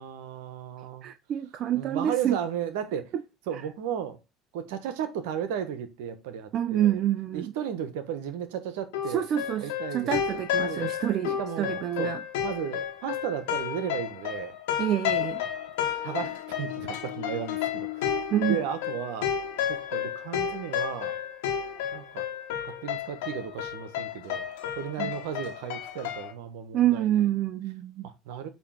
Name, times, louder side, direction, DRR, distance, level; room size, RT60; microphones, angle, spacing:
voice 1, 0.0-1.1 1.7-3.1 3.5-4.2 4.5-7.0 7.3-9.2 9.6-10.2 10.6-10.9 11.4-12.1 12.4-14.6 16.0-18.1 18.5-19.3 19.7-21.2 21.9-22.2 22.6-24.5 24.8-27.3 28.0-28.5, right 8 dB, 75° right, 1.1 m, -34 dB
voice 2, 1.0-2.4 3.5-3.6 6.5-7.5 9.1-12.2 14.8-15.4 18.3-18.6 25.0-25.1 26.7-28.1, right 11 dB, 50° right, 0.5 m, -27 dB
sound 1, 8.9-26.3, left 9 dB, 80° left, 1.4 m, -32 dB
8.5 x 3.1 x 5.8 m
hypercardioid pair, 75°, 0 cm